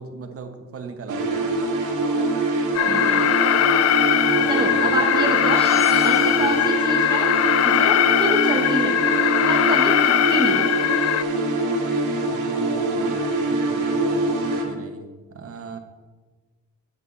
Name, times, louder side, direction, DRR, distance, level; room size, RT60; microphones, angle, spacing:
voice 1, 0.0-1.5 4.2-4.8 6.2-6.5 12.0-15.8, right 4 dB, 50° right, 6 dB, 1.3 m, -39 dB
sound 1, 1.1-14.6, right 2 dB, 85° right, 1.6 m, -24 dB
Alarm, 2.7-11.2, left 12 dB, 55° left, 0.4 m, -20 dB
voice 2, 2.9-3.3 4.5-5.7 6.0-7.3 7.6-9.0 9.5-10.7, right 1 dB, 15° right, 1 dB, 1.1 m, -27 dB
sound 2, 5.5-6.9, left 1 dB, 30° left, 2.7 m, -37 dB
9.1 x 8.0 x 4.1 m, 1.3 s
cardioid pair, 90°, 30 cm